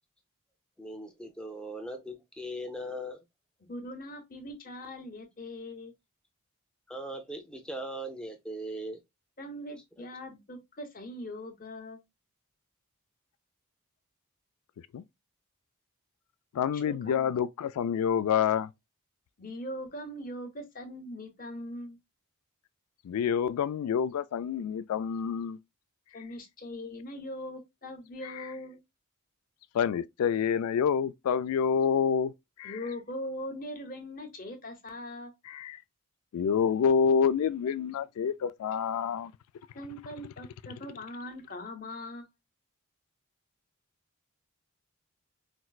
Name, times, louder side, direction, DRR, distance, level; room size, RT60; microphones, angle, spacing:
voice 1, 0.8-3.2 6.9-9.0 9.7-10.1, equal, 5° left, 0.5 m, -39 dB
voice 2, 3.7-5.9 9.4-12.0 16.7-17.3 19.4-22.0 26.1-28.8 32.6-35.3 39.7-42.3, left 1 dB, 40° left, 0.8 m, -41 dB
voice 3, 16.5-18.7 23.0-25.6 28.4-28.5 29.7-32.3 32.6-32.8 35.5-35.8 36.3-39.3, left 7 dB, 75° left, 0.3 m, -27 dB
4.3 x 2.0 x 2.3 m
head